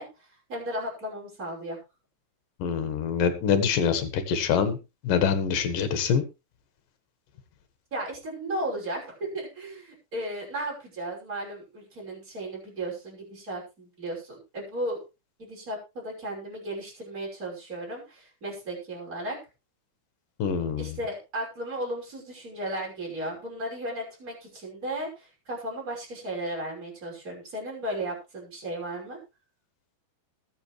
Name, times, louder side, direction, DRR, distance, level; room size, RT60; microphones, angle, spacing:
voice 1, 0.0-1.8 7.9-15.0 15.4-19.4 20.8-29.2, right 1 dB, 20° right, -2 dB, 6.1 m, -35 dB
voice 2, 2.6-4.8 5.0-6.2 20.4-21.0, left 7 dB, 70° left, 10 dB, 3.1 m, -25 dB
20.5 x 8.3 x 3.2 m, 0.28 s
omnidirectional pair, 4.3 m